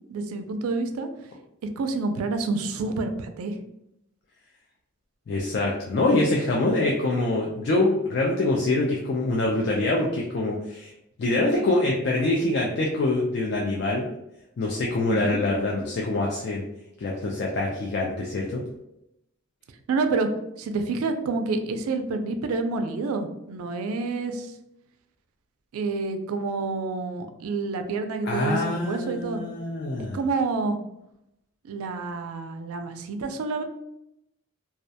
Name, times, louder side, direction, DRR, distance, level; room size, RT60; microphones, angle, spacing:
voice 1, 0.1-1.1 1.8-3.6 15.1-15.4 19.9-20.3 20.6-24.5 25.7-29.4 30.1-30.8 31.6-33.6, right 3 dB, 90° right, 7 dB, 0.3 m, -28 dB
voice 2, 5.3-10.9 11.2-14.1 14.6-16.6 17.0-18.6 28.3-30.2, left 2 dB, 50° left, -2 dB, 0.3 m, -25 dB
2.3 x 2.1 x 2.6 m, 0.83 s
head